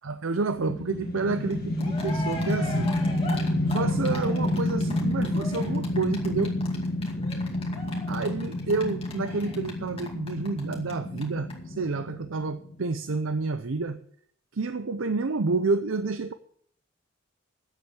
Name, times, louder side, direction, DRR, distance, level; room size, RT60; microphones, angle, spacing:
voice 1, 0.0-3.0 3.7-6.5 8.1-14.0 14.5-16.3, right 3 dB, 75° right, 11 dB, 0.6 m, -29 dB
sound 1, 0.6-12.8, left 1 dB, 45° left, 1.8 m, -29 dB
Cheering, 1.5-1.6 1.8-10.9 11.2-11.3 11.5-11.6, left 2 dB, 30° left, 2.4 m, -39 dB
10.0 x 8.1 x 8.6 m, 0.64 s
head